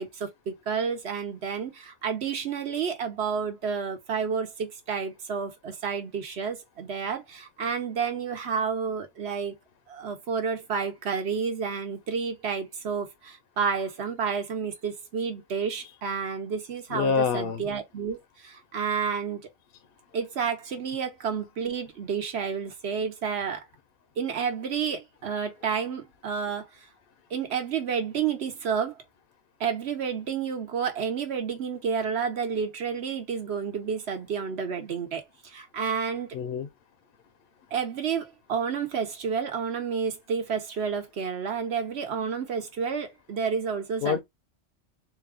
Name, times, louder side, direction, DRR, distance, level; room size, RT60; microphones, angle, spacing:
voice 1, 0.0-9.5 9.9-19.4 20.1-23.6 24.2-26.7 27.3-29.0 29.6-36.3 37.7-44.2, right 6 dB, 65° right, 1.1 m, -30 dB
voice 2, 16.9-17.6 36.3-36.7 44.0-44.2, left 6 dB, 60° left, 0.7 m, -26 dB
4.0 x 2.3 x 3.5 m
omnidirectional pair, 1.2 m